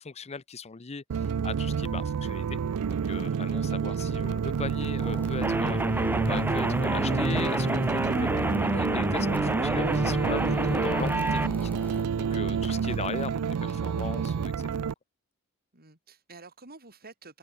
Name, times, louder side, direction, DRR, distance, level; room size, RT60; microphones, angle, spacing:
voice 1, 0.0-2.6 3.0-14.7, left 4 dB, 30° left, 0.6 m, -39 dB
sound 1, 1.1-14.9, right 6 dB, 80° right, 0.4 m, -29 dB
Driving by Noisy Car, 5.0-12.0, equal, 10° left, 2.0 m, -42 dB
sound 2, 5.4-11.5, right 1 dB, 10° right, 1.0 m, -27 dB
voice 2, 12.5-13.0 15.7-17.4, right 3 dB, 45° right, 5.1 m, -50 dB
open air
head